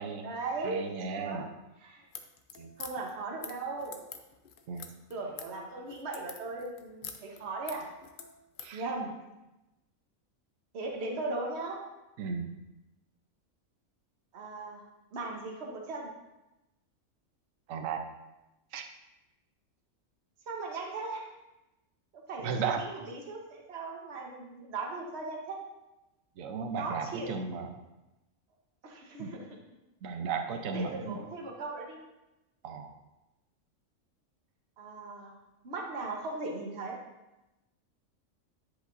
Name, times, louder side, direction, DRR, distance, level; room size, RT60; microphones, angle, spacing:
voice 1, 0.0-1.5 1.8-2.0 2.8-4.0 5.1-7.9 8.7-9.1 10.7-11.8 14.3-14.8 15.1-16.1 20.5-21.3 22.1-25.6 26.8-27.3 28.8-29.4 30.5-32.0 34.8-35.4 35.6-37.0, right 3 dB, 55° right, 1 dB, 1.2 m, -38 dB
voice 2, 0.6-1.5 2.6-2.7 4.7-4.9 8.6-8.8 12.2-12.5 17.7-18.0 18.7-18.8 22.4-22.8 26.4-27.7 29.2-29.3 30.0-31.2 32.6-32.9, right 5 dB, 70° right, 5 dB, 1.1 m, -35 dB
sound 1, 2.0-8.7, left 6 dB, 60° left, 0.5 m, -46 dB
10.0 x 5.2 x 2.5 m, 0.99 s
omnidirectional pair, 1.4 m